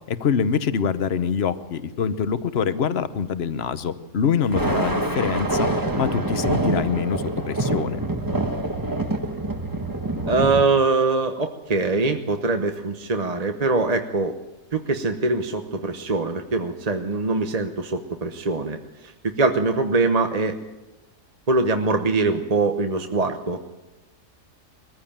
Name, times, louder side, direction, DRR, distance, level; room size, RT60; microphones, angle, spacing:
voice 1, 0.1-5.7 6.0-8.0, left 7 dB, 45° left, 13 dB, 1.1 m, -25 dB
Thunder, 4.4-10.6, right 2 dB, 15° right, 1.3 m, -25 dB
voice 2, 10.2-14.4 14.7-20.6 21.5-23.6, right 3 dB, 30° right, 6 dB, 0.9 m, -23 dB
22.0 x 15.0 x 8.8 m, 1.1 s
omnidirectional pair, 1.6 m